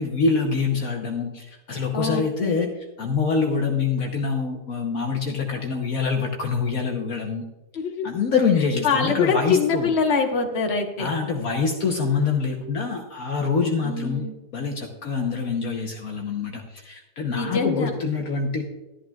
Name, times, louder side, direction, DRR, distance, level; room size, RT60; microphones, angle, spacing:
voice 1, 0.0-2.7 3.0-7.5 8.0-9.9 11.0-18.6, left 5 dB, 65° left, 1 dB, 1.3 m, -25 dB
voice 2, 1.9-2.6 7.7-8.1 8.8-11.1 13.8-14.3 17.3-17.9, left 5 dB, 45° left, 2 dB, 1.4 m, -24 dB
12.5 x 11.5 x 2.3 m, 1.1 s
omnidirectional pair, 1.7 m